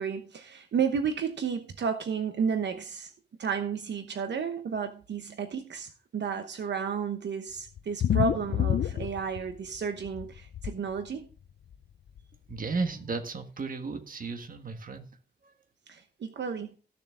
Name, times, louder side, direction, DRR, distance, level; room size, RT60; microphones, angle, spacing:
voice 1, 0.0-3.1 3.4-11.3 15.9-16.8, right 6 dB, 75° right, 7 dB, 1.0 m, -32 dB
sound 1, 7.8-9.8 10.1-10.7 11.7-11.8 12.2-12.3 12.5-12.6, left 10 dB, 70° left, 0.5 m, -28 dB
voice 2, 12.5-15.1 15.4-15.5, right 4 dB, 50° right, 7 dB, 1.5 m, -34 dB
15.0 x 6.9 x 3.7 m, 0.36 s
wide cardioid pair, 155°, 18 cm